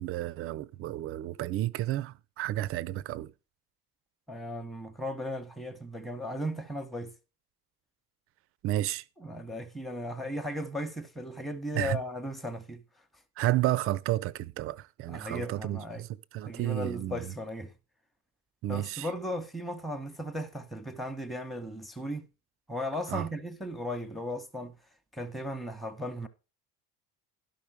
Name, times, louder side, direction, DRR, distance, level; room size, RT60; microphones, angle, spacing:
voice 1, 0.0-3.3 8.6-9.0 11.8-12.0 13.4-16.1 16.3-17.3 18.6-19.1 23.1-23.3, right 15 dB, 30° right, 0.4 m, -31 dB
voice 2, 4.3-7.1 9.2-12.8 15.1-16.1 16.4-17.7 18.7-22.3 22.7-24.7 25.1-26.3, left 1 dB, ahead, 0.9 m, -36 dB
12.0 x 5.5 x 4.8 m
figure-of-eight pair, 55°, 46 cm